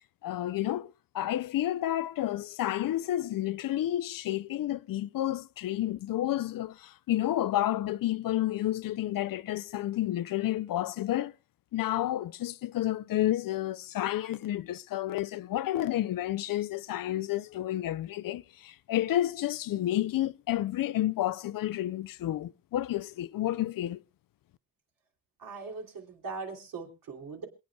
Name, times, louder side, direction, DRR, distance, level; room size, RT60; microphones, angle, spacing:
voice 1, 0.2-11.3 11.7-24.0, left 13 dB, 75° left, 0.5 m, -30 dB
voice 2, 25.4-27.4, right 4 dB, 80° right, 3.1 m, -40 dB
27.0 x 9.2 x 2.3 m
wide cardioid pair, 130°, 33 cm